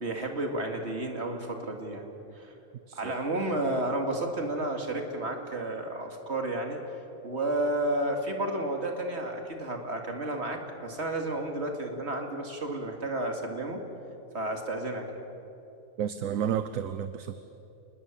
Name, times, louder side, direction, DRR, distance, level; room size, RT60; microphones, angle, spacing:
voice 1, 0.0-2.1 2.3-2.5 2.9-6.8 7.2-13.8 14.3-15.1, right 1 dB, 50° right, 3 dB, 2.7 m, -31 dB
voice 2, 2.9-3.2 16.0-17.4, right 9 dB, 70° right, 12 dB, 1.1 m, -31 dB
27.5 x 20.5 x 7.4 m, 2.9 s
omnidirectional pair, 1.5 m